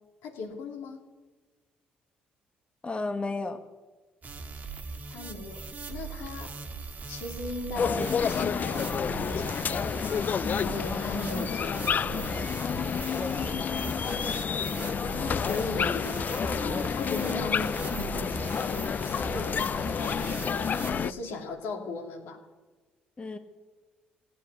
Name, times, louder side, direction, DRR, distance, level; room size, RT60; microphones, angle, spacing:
voice 1, 0.2-1.0 5.1-6.5 7.1-12.2 15.2-16.3 16.6-22.4, left 3 dB, 80° left, 1 dB, 2.8 m, -37 dB
voice 2, 2.8-3.6 13.1-13.4 23.2-23.4, left 3 dB, 30° left, 6 dB, 1.3 m, -33 dB
sound 1, 4.2-21.1, right 4 dB, 40° right, 1.4 m, -39 dB
sound 2, 7.8-21.1, left 7 dB, 45° left, 0.4 m, -30 dB
16.0 x 8.5 x 9.7 m, 1.3 s
supercardioid pair, 65°, 4 cm